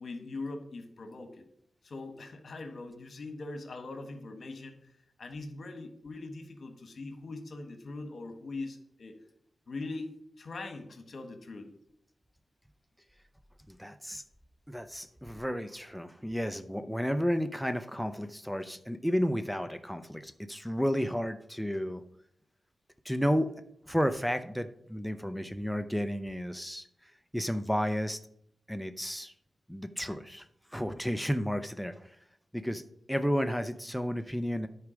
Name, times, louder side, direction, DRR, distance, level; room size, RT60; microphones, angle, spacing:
voice 1, 0.0-1.4 1.8-4.8 5.2-9.2 9.7-10.1 10.4-11.7, left 3 dB, 60° left, 7 dB, 1.4 m, -41 dB
voice 2, 13.7-14.2 14.7-22.0 23.0-23.5 23.9-28.2 28.7-29.3 29.7-30.4 30.7-32.2 32.5-32.8 33.1-34.7, equal, ahead, 10 dB, 0.6 m, -32 dB
9.6 x 4.7 x 5.1 m, 0.71 s
cardioid pair, 55°, 0 cm